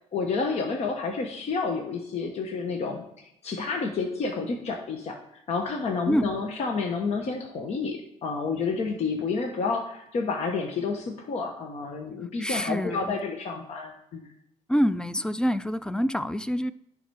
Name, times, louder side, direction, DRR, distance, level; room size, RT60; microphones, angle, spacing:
voice 1, 0.1-5.2 5.5-14.3, left 4 dB, 55° left, 3 dB, 1.2 m, -30 dB
voice 2, 12.4-13.1 14.7-16.7, equal, 5° left, 14 dB, 0.4 m, -26 dB
10.5 x 4.0 x 4.8 m, 0.78 s
cardioid pair, 100°, 13 cm